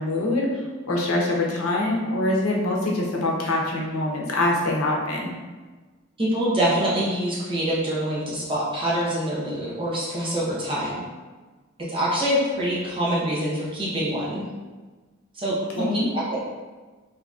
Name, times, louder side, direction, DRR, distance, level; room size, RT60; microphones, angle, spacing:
voice 1, 0.0-5.3 15.8-16.1, left 2 dB, 90° left, -2 dB, 0.7 m, -24 dB
voice 2, 6.2-11.0 11.9-14.4 15.3-16.5, right 1 dB, 25° right, -7 dB, 0.8 m, -25 dB
3.7 x 2.7 x 2.4 m, 1.3 s
head